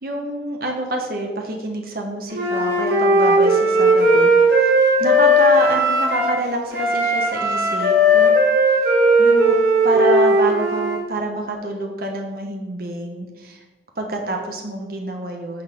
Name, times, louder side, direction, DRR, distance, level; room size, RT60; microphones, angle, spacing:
voice 1, 0.0-4.3 4.6-4.7 5.0-8.3 9.2-9.6 9.8-13.6 14.0-15.6, right 2 dB, 55° right, 2 dB, 1.3 m, -27 dB
Wind instrument woodwind instrument, 2.3-6.4 6.7-11.0, right 1 dB, 70° right, 3.2 m, -16 dB
9.9 x 4.1 x 6.7 m, 1.3 s
head